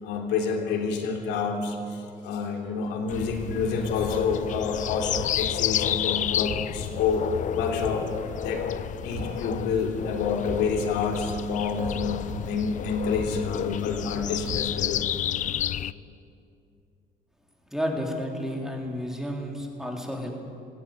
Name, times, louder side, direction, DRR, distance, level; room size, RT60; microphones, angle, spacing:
voice 1, 0.0-7.3 7.5-8.1 8.4-8.6 9.0-15.0, left 5 dB, 90° left, 2 dB, 3.2 m, -28 dB
sound 1, 3.1-15.9, left 11 dB, 50° left, 0.5 m, -31 dB
sound 2, 5.1-7.3 7.6-15.3 15.6-15.7, right 2 dB, 80° right, 3.7 m, -39 dB
voice 2, 17.7-20.3, equal, 5° right, 0 dB, 3.7 m, -31 dB
17.0 x 17.0 x 9.3 m, 2.5 s
cardioid pair, 110°, 17 cm